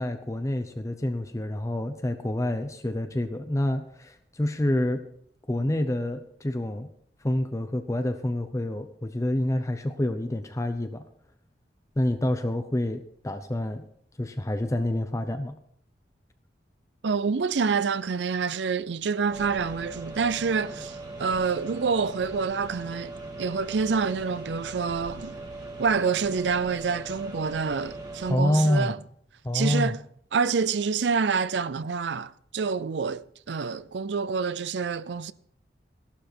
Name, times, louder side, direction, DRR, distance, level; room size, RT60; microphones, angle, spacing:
voice 1, 0.0-5.0 5.5-6.9 7.2-11.0 12.0-13.8 14.2-15.6 28.3-28.9 29.4-29.9, left 1 dB, 20° left, 0.7 m, -27 dB
voice 2, 17.0-25.4 25.8-29.0 29.5-30.0 30.3-35.3, right 5 dB, 85° right, 0.5 m, -27 dB
sound 1, 19.3-28.3, right 2 dB, 25° right, 2.5 m, -40 dB
15.0 x 11.5 x 4.4 m
head